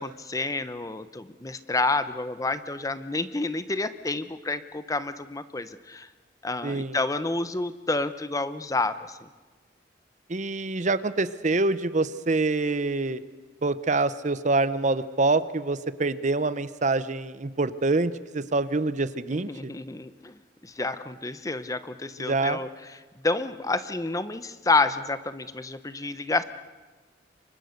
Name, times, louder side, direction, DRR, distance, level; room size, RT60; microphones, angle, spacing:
voice 1, 0.0-6.1 6.4-9.3 19.3-20.4 20.6-22.7 23.2-26.4, left 3 dB, 20° left, 12 dB, 0.8 m, -29 dB
voice 2, 6.6-7.0 10.3-13.2 13.6-19.7 22.2-22.6, right 3 dB, 40° right, 14 dB, 0.8 m, -26 dB
29.0 x 24.5 x 6.6 m, 1.3 s
head